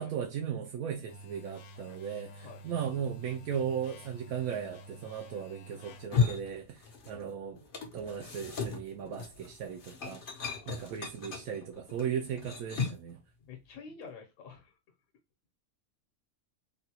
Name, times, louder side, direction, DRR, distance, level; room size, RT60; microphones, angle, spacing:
voice 1, 0.0-7.6 7.9-10.2 10.7-13.2, right 8 dB, 80° right, 1.1 m, -37 dB
sound 1, 1.1-6.1, right 1 dB, 90° left, 1.1 m, -50 dB
sound 2, 5.9-7.3 7.6-13.1, left 5 dB, 50° left, 0.7 m, -35 dB
voice 2, 10.2-10.9 13.4-14.8, left 5 dB, 65° left, 1.1 m, -49 dB
3.8 x 2.2 x 2.8 m
omnidirectional pair, 1.5 m